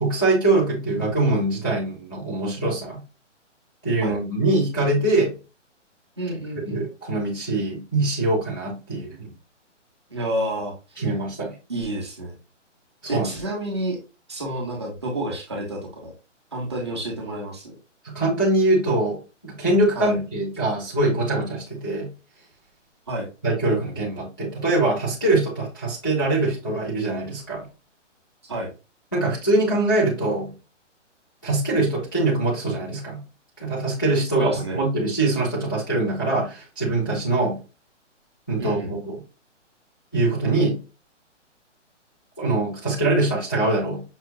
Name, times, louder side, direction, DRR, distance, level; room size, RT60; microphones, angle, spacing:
voice 1, 0.0-3.0 3.8-5.4 6.7-9.3 11.0-11.6 13.1-13.3 18.0-22.1 23.4-27.6 29.1-30.5 31.4-33.2 33.6-37.6 38.5-39.1 40.1-40.8 42.4-44.0, right 2 dB, 20° left, -6 dB, 0.4 m, -23 dB
voice 2, 6.2-6.9 10.1-10.7 11.7-12.4 13.1-14.0 14.3-16.1 16.5-17.8 19.9-20.1 23.1-23.3 28.5-28.7 34.3-34.8 38.6-38.9, right 1 dB, 20° right, -2 dB, 0.6 m, -29 dB
5.4 x 2.2 x 2.5 m, 0.30 s
hypercardioid pair, 170°, 37 cm